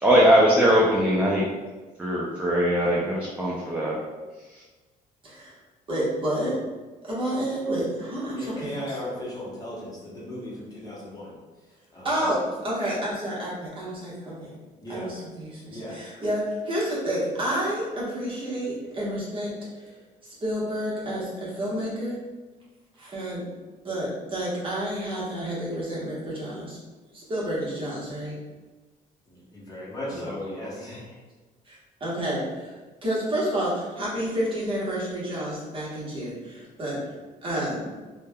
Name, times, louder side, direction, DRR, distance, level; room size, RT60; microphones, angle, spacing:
voice 1, 0.0-1.4 2.0-4.0 4.5-4.6 30.1-30.3, equal, 10° right, -5 dB, 0.4 m, -21 dB
voice 2, 5.2-5.5 5.9-6.5 7.0-9.0 12.0-14.5 14.9-19.8 20.2-22.2 23.0-23.4 23.8-26.8 27.1-28.3 31.7-37.0 37.4-37.8, right 1 dB, 35° right, -7 dB, 1.0 m, -30 dB
voice 3, 8.3-11.4 11.9-12.2 14.8-15.1 15.7-16.0 29.3-31.0, left 1 dB, 25° left, -6 dB, 0.9 m, -36 dB
3.2 x 2.2 x 2.2 m, 1.3 s
cardioid pair, 115°, 15 cm